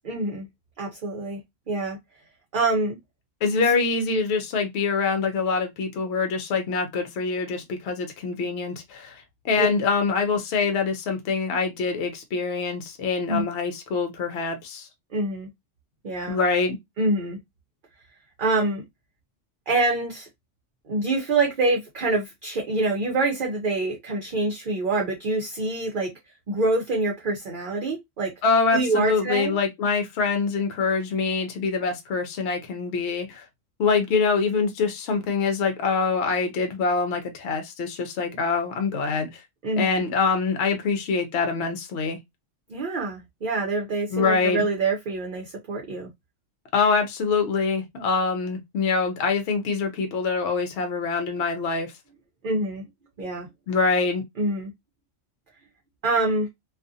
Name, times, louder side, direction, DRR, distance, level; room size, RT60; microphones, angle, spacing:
voice 1, 0.0-0.5 0.8-1.4 1.7-2.0 2.5-3.0 9.6-9.7 13.3-13.5 15.1-15.5 16.0-16.4 17.0-17.4 18.4-18.8 19.7-20.3 20.9-26.1 26.5-28.3 28.7-29.6 39.6-40.0 42.7-46.1 52.4-52.9 53.2-53.5 54.4-54.7 56.0-56.5, right 2 dB, 50° right, 0.7 m, -25 dB
voice 2, 3.4-14.9 16.3-16.8 28.4-33.4 33.8-39.4 39.8-42.2 44.1-44.7 46.7-51.9 53.7-54.2, left 4 dB, 65° left, 0.8 m, -25 dB
2.4 x 2.4 x 2.5 m
omnidirectional pair, 1.3 m